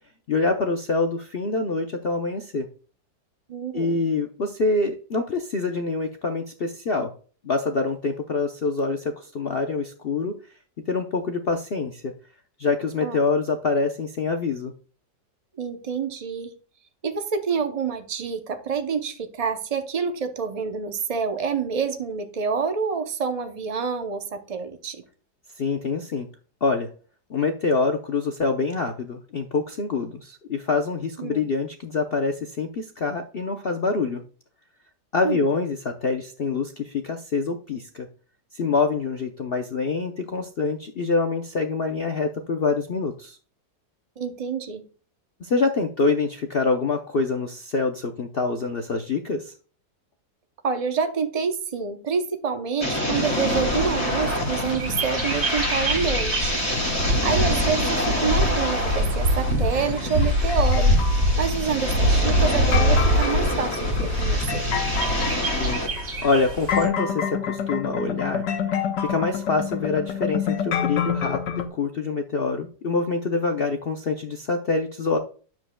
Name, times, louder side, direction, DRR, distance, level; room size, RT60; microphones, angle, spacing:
voice 1, 0.3-2.7 3.7-7.1 7.4-10.4 10.9-12.1 12.6-14.7 25.6-26.3 26.6-26.9 27.3-34.2 35.1-38.1 38.5-43.4 45.4-49.5 65.6-65.8 66.2-68.4 69.0-75.2, left 4 dB, 60° left, 0.6 m, -25 dB
voice 2, 3.5-4.0 13.0-13.2 15.6-16.5 17.0-25.0 31.2-31.4 35.2-35.4 44.2-44.8 50.6-56.6 57.2-61.0 61.4-64.7, right 6 dB, 70° right, 0.3 m, -27 dB
sound 1, 52.8-65.9, left 1 dB, 10° left, 1.5 m, -27 dB
Bird, 53.1-66.9, equal, 40° right, 2.1 m, -24 dB
sound 2, 59.7-61.3 62.5-71.7, left 7 dB, 90° left, 1.6 m, -28 dB
9.9 x 7.5 x 2.2 m
omnidirectional pair, 1.8 m